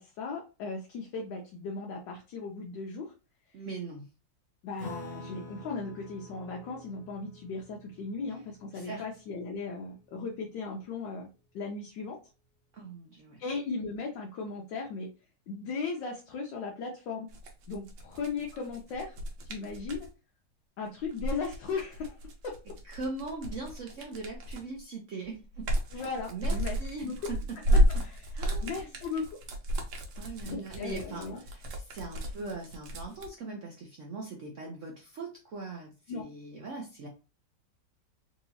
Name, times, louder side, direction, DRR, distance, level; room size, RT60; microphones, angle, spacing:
voice 1, 0.0-3.1 4.6-11.3 11.5-12.2 13.4-15.1 15.5-17.3 17.7-19.2 19.5-20.1 20.8-22.2 22.4-22.5 25.9-27.1 27.9-28.3 28.6-29.3 30.4-31.4 36.1-36.3, left 4 dB, 80° left, 0 dB, 1.4 m, -37 dB
voice 2, 3.5-4.1 8.7-9.0 12.7-13.4 22.8-25.7 25.9-26.0 26.3-27.6 27.9-28.0 28.3-28.9 30.1-37.1, right 3 dB, 65° right, 0 dB, 0.7 m, -40 dB
Acoustic guitar / Strum, 4.8-9.6, left 1 dB, 60° left, 1.8 m, -47 dB
sound 1, 17.3-20.1 21.0-24.8 25.2-33.3, equal, 90° right, 1.5 m, -32 dB
4.0 x 2.7 x 2.7 m, 0.32 s
omnidirectional pair, 2.0 m